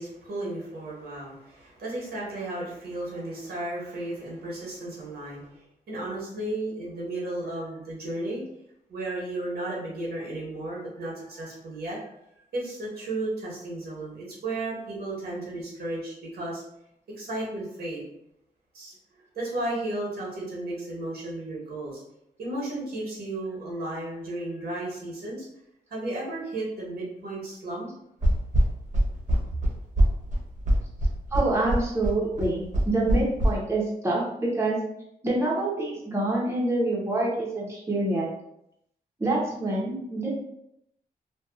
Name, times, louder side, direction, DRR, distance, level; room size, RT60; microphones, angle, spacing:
voice 1, 0.0-5.6 5.9-8.4 8.9-12.0 12.5-16.6 17.2-18.0 18.7-18.9 19.3-22.0 22.4-25.5 25.9-27.9, right 2 dB, 80° right, -5 dB, 1.1 m, -34 dB
sound 1, 28.2-33.5, right 1 dB, 50° right, 0.9 m, -22 dB
voice 2, 31.3-34.8 35.2-38.3 39.2-40.3, right 2 dB, 15° right, -4 dB, 0.8 m, -26 dB
2.8 x 2.3 x 2.3 m, 0.78 s
cardioid pair, 70°, 16 cm